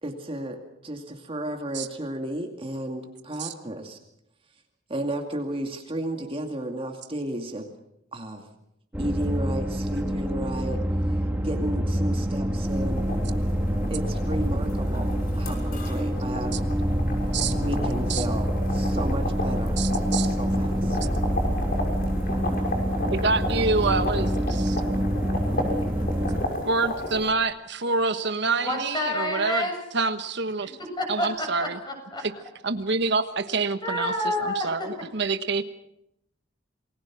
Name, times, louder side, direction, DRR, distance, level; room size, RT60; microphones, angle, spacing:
voice 1, 0.0-4.0 4.9-7.7 8.1-8.4 9.0-13.1 13.9-16.6 17.5-19.8 20.2-21.0 22.9-23.1, right 1 dB, 30° right, 3 dB, 2.4 m, -33 dB
sound 1, 8.9-26.5, equal, 10° right, 2.0 m, -26 dB
sound 2, 12.6-27.3, left 1 dB, 50° left, 6.2 m, -34 dB
voice 2, 19.8-20.3 23.1-24.8 26.6-29.6 29.9-30.8 31.1-31.8 32.6-34.1 34.4-35.6, right 4 dB, 65° right, 9 dB, 1.2 m, -26 dB
voice 3, 28.6-29.8 30.6-32.3 33.8-34.9, left 1 dB, 25° left, 3 dB, 7.0 m, -29 dB
28.5 x 20.5 x 6.2 m, 0.79 s
head